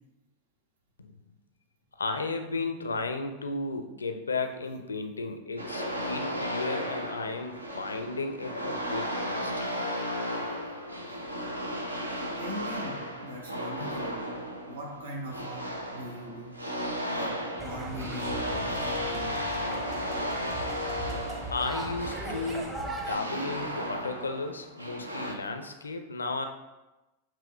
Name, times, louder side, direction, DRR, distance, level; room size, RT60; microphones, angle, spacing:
voice 1, 2.0-9.7 21.5-26.5, left 3 dB, 75° left, 6 dB, 0.4 m, -34 dB
sound 1, 5.6-25.3, equal, 80° right, 0.5 m, -34 dB
voice 2, 12.4-14.2 14.7-16.6 17.1-19.4 19.9-20.0, equal, 65° right, -2 dB, 1.0 m, -40 dB
sound 2, 17.6-23.2, right 1 dB, 15° right, 0.7 m, -38 dB
6.6 x 3.0 x 2.3 m, 1.0 s
figure-of-eight pair, 90°, 0 cm